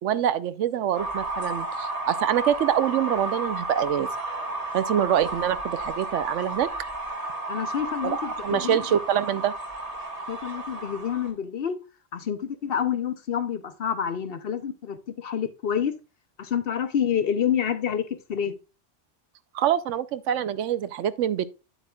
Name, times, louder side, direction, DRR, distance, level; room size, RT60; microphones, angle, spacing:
voice 1, 0.0-4.1 4.7-6.7 8.0-9.5 19.5-21.4, right 10 dB, 80° right, 0.9 m, -25 dB
sound 1, 0.9-11.3, right 2 dB, 30° right, 1.3 m, -33 dB
voice 2, 7.5-8.8 10.3-11.8 12.1-15.9 16.4-18.5, left 8 dB, 55° left, 0.8 m, -28 dB
9.2 x 8.0 x 2.3 m
omnidirectional pair, 1.3 m